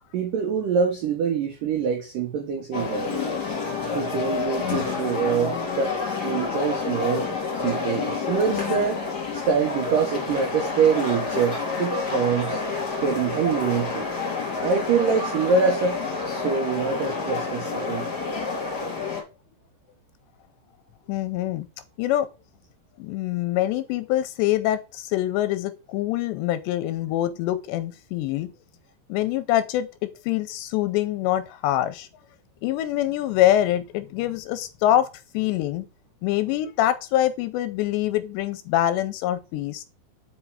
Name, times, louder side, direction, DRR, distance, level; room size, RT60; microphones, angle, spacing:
voice 1, 0.1-3.3 3.9-5.9 6.2-7.3 7.6-9.0 9.3-12.6 13.0-14.1 14.6-18.1, right 6 dB, 80° right, 1.9 m, -25 dB
sound 1, 2.7-19.2, left 4 dB, 30° left, 2.3 m, -29 dB
voice 2, 21.1-21.7 22.0-22.3 23.0-28.5 29.1-32.1 32.6-35.1 35.3-35.9 36.2-39.8, left 13 dB, 80° left, 2.6 m, -24 dB
7.3 x 5.2 x 4.7 m
omnidirectional pair, 5.3 m